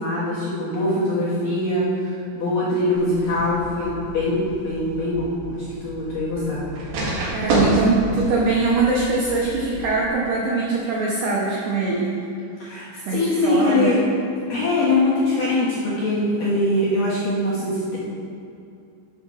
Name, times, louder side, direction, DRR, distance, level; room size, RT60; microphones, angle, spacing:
voice 1, 0.0-6.6 12.6-14.0 14.5-18.0, left 1 dB, 60° left, -9 dB, 2.4 m, -22 dB
sound 1, 2.9-10.1, right 1 dB, 60° right, 2.8 m, -29 dB
voice 2, 7.3-12.1 13.1-13.9, right 3 dB, 80° right, -4 dB, 2.3 m, -22 dB
12.5 x 9.2 x 2.5 m, 2.5 s
omnidirectional pair, 5.8 m